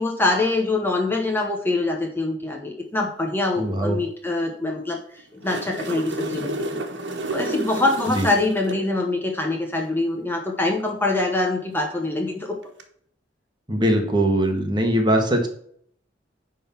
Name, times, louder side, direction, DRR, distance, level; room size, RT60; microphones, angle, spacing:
voice 1, 0.0-6.8 7.3-12.6, left 2 dB, 10° left, 1 dB, 1.0 m, -24 dB
voice 2, 3.6-4.0 8.1-8.3 13.7-15.5, right 1 dB, 25° right, 3 dB, 1.5 m, -21 dB
sound 1, 5.2-8.8 12.6-12.8, right 2 dB, 75° right, 1.3 m, -31 dB
10.0 x 3.9 x 5.7 m, 0.63 s
head